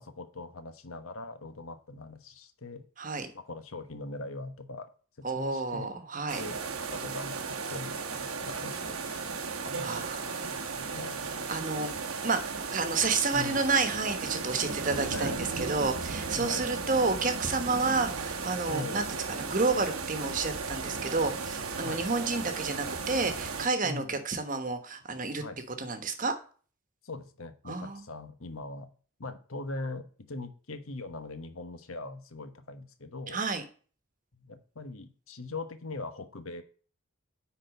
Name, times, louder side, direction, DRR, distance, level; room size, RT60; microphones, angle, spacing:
voice 1, 0.0-2.8 3.3-4.9 5.2-5.9 6.3-6.6 6.9-9.2 9.6-11.3 13.3-13.7 15.1-15.5 16.4-16.7 18.7-19.1 21.8-22.0 23.8-24.2 25.4-25.6 27.0-28.9 29.2-33.4 34.4-36.6, left 2 dB, 75° left, 9 dB, 1.1 m, -41 dB
voice 2, 3.0-3.3 5.2-6.4 9.8-10.5 11.5-11.9 12.2-12.4 12.7-15.4 15.7-25.4 25.8-26.3 27.7-28.0 33.3-33.6, right 4 dB, 40° right, 8 dB, 1.2 m, -30 dB
sound 1, 6.3-23.7, right 4 dB, 90° right, 1.3 m, -35 dB
9.7 x 4.2 x 5.2 m, 0.40 s
head